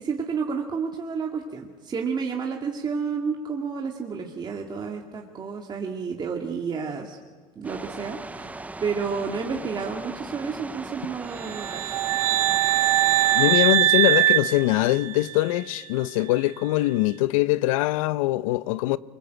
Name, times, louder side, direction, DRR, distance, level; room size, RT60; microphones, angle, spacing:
voice 1, 0.0-7.2 7.6-8.5 8.8-11.8, right 5 dB, 25° right, 2.4 m, -30 dB
sound 1, 7.6-13.6, right 2 dB, 10° right, 0.8 m, -38 dB
sound 2, 11.4-15.4, right 14 dB, 85° right, 1.0 m, -22 dB
voice 2, 13.3-19.0, left 17 dB, 75° left, 0.9 m, -23 dB
25.0 x 23.5 x 8.1 m
supercardioid pair, 115°, 17 cm